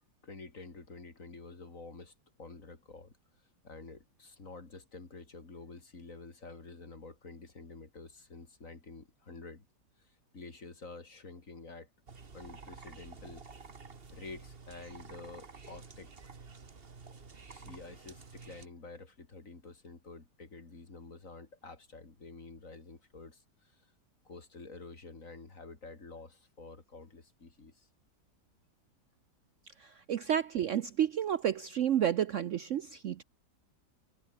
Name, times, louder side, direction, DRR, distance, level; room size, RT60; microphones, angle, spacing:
voice 1, 0.2-9.6 10.0-11.9 12.3-13.5 14.1-16.1 17.1-17.2 17.5-23.9 24.2-27.9, left 3 dB, 50° left, 3.5 m, -49 dB
sound 1, 12.1-18.7, right 4 dB, 35° right, 1.8 m, -51 dB
voice 2, 29.8-33.2, right 10 dB, 60° right, 0.9 m, -31 dB
omnidirectional pair, 1.8 m